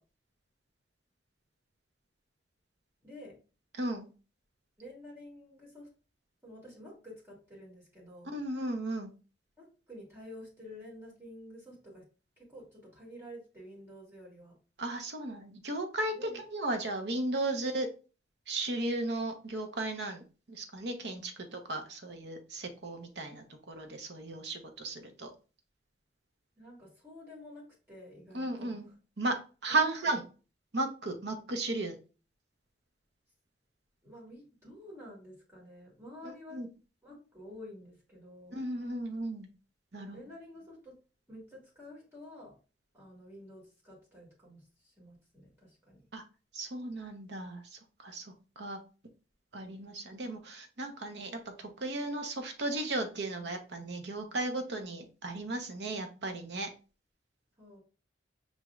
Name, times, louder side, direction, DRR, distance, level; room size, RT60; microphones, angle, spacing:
voice 1, 3.0-3.4 4.8-5.9 6.4-8.3 9.6-12.0 12.4-14.6 16.1-16.4 26.6-28.8 29.7-30.1 34.0-36.6 37.0-38.6 39.9-41.0 41.3-42.6 42.9-46.1 57.6-57.8, left 1 dB, 15° right, -5 dB, 1.8 m, -50 dB
voice 2, 3.8-4.1 8.2-9.1 14.8-17.9 18.5-25.3 28.3-28.9 29.2-30.2 30.7-32.0 36.5-36.7 38.5-39.5 39.9-40.2 46.1-46.2 46.5-48.8 49.5-56.7, right 2 dB, 65° right, 6 dB, 0.8 m, -35 dB
5.5 x 3.1 x 2.3 m, 0.34 s
head